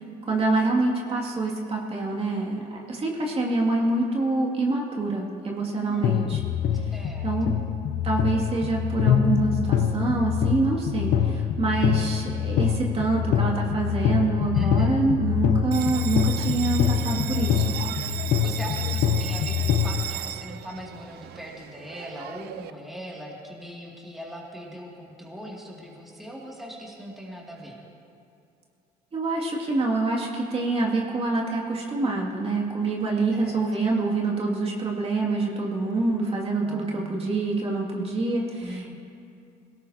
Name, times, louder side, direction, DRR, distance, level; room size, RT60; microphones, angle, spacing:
voice 1, 0.3-6.4 6.8-6.9 7.2-7.5 8.0-17.8 29.1-38.9, right 3 dB, 35° right, -3 dB, 2.4 m, -26 dB
voice 2, 5.8-6.4 6.9-7.5 14.5-15.0 18.4-27.8 33.3-33.9 36.6-37.3 38.6-38.9, equal, ahead, -4 dB, 2.5 m, -40 dB
sound 1, 6.0-20.0, left 9 dB, 75° left, 0.8 m, -25 dB
Bell, 15.7-22.7, right 12 dB, 70° right, 0.5 m, -35 dB
21.0 x 18.0 x 2.9 m, 2.5 s
cardioid pair, 110°, 17 cm